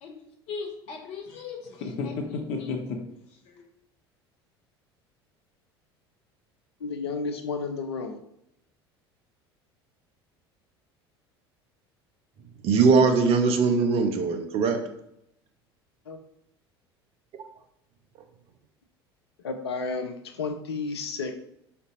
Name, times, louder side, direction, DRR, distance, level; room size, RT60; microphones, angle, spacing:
voice 1, 0.0-3.0 3.4-3.7, left 4 dB, 55° left, 2 dB, 0.9 m, -34 dB
voice 2, 6.8-8.2 16.1-16.2 19.4-21.4, left 4 dB, 80° left, 6 dB, 0.5 m, -32 dB
voice 3, 12.6-14.8, right 4 dB, 50° right, 6 dB, 0.7 m, -21 dB
4.5 x 3.9 x 2.5 m, 0.77 s
figure-of-eight pair, 70°, 13 cm